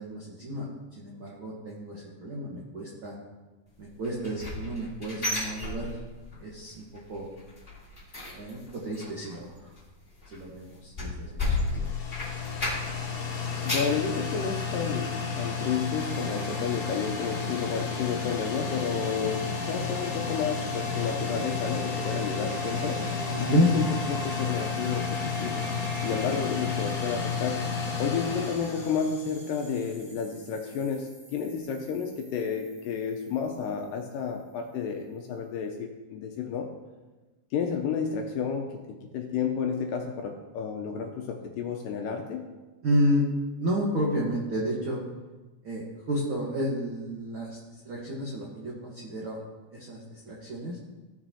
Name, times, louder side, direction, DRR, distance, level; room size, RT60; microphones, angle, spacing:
voice 1, 0.0-3.2 3.8-6.0 6.4-7.3 8.3-9.5 10.3-11.9 23.3-23.7 42.8-43.2 43.6-45.0 45.6-49.4 49.7-50.8, equal, 80° right, -4 dB, 1.1 m, -31 dB
sound 1, 4.0-6.4 6.7-7.0 7.3-13.1 13.4-14.0 14.5-14.6 15.1-15.2, left 2 dB, 20° left, 1.6 m, -33 dB
sound 2, 11.5-29.6, left 5 dB, 55° left, 2.3 m, -32 dB
voice 2, 13.6-23.1 23.4-25.6 26.0-27.7 28.0-36.7 37.5-42.5, left 6 dB, 80° left, 3 dB, 2.1 m, -31 dB
sound 3, 16.0-34.4, right 2 dB, 40° right, 2.0 m, -45 dB
16.0 x 6.0 x 2.8 m, 1.2 s
omnidirectional pair, 4.4 m